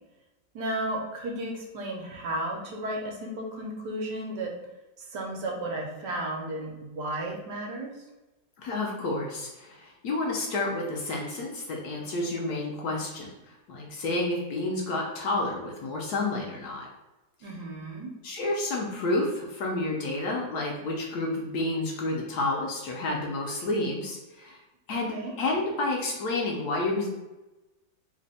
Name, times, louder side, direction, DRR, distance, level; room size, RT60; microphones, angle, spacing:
voice 1, 0.5-4.5 5.0-8.0 17.4-18.1 24.9-25.3, right 1 dB, 70° right, -1 dB, 1.2 m, -34 dB
voice 2, 8.6-16.9 18.2-24.6 24.9-27.1, left 2 dB, 70° left, -1 dB, 1.1 m, -30 dB
3.2 x 2.2 x 3.9 m, 1.0 s
omnidirectional pair, 2.0 m